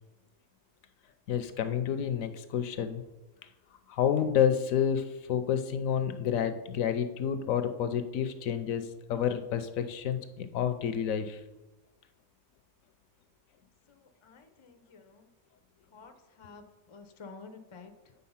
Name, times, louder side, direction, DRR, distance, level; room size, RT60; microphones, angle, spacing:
voice 1, 1.3-3.0 3.9-11.4, left 8 dB, 70° left, 9 dB, 0.9 m, -29 dB
voice 2, 13.9-15.3 15.9-18.1, left 4 dB, 45° left, 6 dB, 0.3 m, -51 dB
8.4 x 3.9 x 5.6 m, 1.1 s
omnidirectional pair, 1.6 m